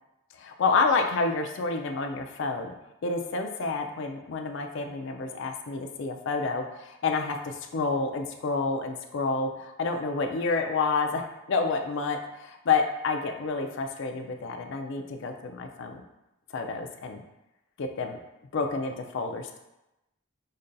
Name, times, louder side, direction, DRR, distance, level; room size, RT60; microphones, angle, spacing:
voice 1, 0.4-2.7 3.0-16.0 16.5-17.2 17.8-18.2 18.5-19.6, left 4 dB, 55° left, 4 dB, 0.4 m, -29 dB
5.2 x 2.2 x 2.5 m, 0.93 s
head